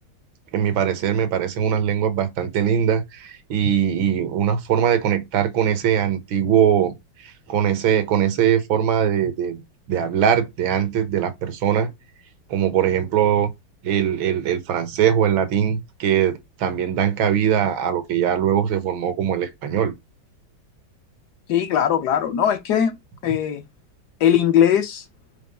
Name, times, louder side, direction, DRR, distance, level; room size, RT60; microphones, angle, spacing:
voice 1, 0.5-9.6 9.9-11.9 12.5-13.5 13.8-19.9, right 9 dB, 85° right, 1.8 m, -21 dB
voice 2, 21.5-22.9 23.2-23.6 24.2-25.0, left 9 dB, 65° left, 1.1 m, -19 dB
5.7 x 3.7 x 5.2 m
omnidirectional pair, 2.1 m